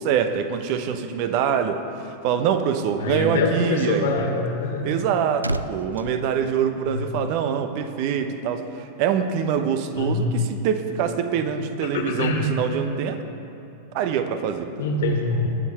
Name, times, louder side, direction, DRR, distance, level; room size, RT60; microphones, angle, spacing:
voice 1, 0.0-4.1 4.8-13.2 13.9-14.7, right 7 dB, 45° right, 8 dB, 1.0 m, -24 dB
voice 2, 3.0-5.0 6.8-7.1 9.9-10.4 11.9-12.5 14.8-15.5, left 3 dB, 60° left, 2 dB, 1.9 m, -24 dB
sound 1, 4.9-7.4 7.6-7.9, right 2 dB, 85° right, 0.4 m, -34 dB
20.5 x 7.7 x 4.4 m, 2.9 s
figure-of-eight pair, 90°, 0 cm